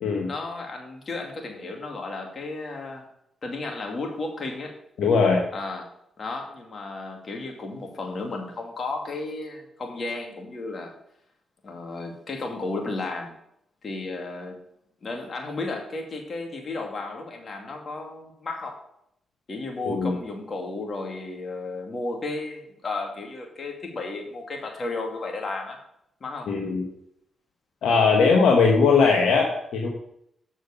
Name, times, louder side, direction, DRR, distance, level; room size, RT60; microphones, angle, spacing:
voice 1, 0.2-3.1 3.4-4.8 5.5-5.9 6.2-10.9 11.6-13.4 13.8-14.6 15.0-18.8 19.5-25.8 26.2-26.5, left 3 dB, 50° left, 2 dB, 2.4 m, -33 dB
voice 2, 5.0-5.4 19.8-20.2 26.5-26.8 27.8-29.9, left 4 dB, 75° left, 0 dB, 1.2 m, -20 dB
7.2 x 6.3 x 6.9 m, 0.75 s
supercardioid pair, 50°, 0 cm